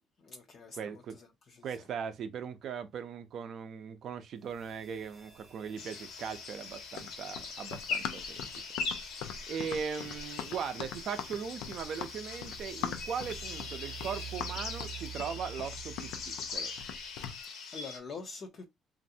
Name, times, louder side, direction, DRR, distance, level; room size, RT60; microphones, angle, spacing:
voice 1, 0.2-1.9 17.4-18.7, left 4 dB, 35° left, 0.5 m, -46 dB
voice 2, 0.7-1.2 1.6-8.5 9.0-16.7, right 7 dB, 45° right, 0.5 m, -39 dB
sound 1, 4.4-17.3, right 8 dB, 25° right, 0.9 m, -50 dB
sound 2, 5.8-18.0, left 5 dB, 70° left, 0.9 m, -41 dB
Run, 6.9-17.4, left 8 dB, 90° left, 0.4 m, -42 dB
3.1 x 2.5 x 2.7 m
cardioid pair, 170°, 0 cm